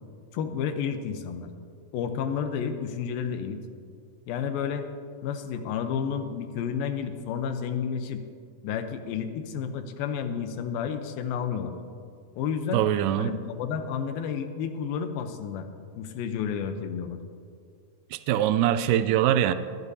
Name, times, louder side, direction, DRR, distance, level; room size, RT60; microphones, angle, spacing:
voice 1, 0.3-1.5 1.9-3.6 4.3-4.9 5.2-8.2 8.6-11.7 12.4-12.8 13.2-15.7 16.0-17.2, left 7 dB, 85° left, 8 dB, 2.6 m, -31 dB
voice 2, 12.7-13.3 18.1-19.5, right 11 dB, 85° right, 12 dB, 1.8 m, -23 dB
20.5 x 12.0 x 2.8 m, 2.2 s
omnidirectional pair, 4.1 m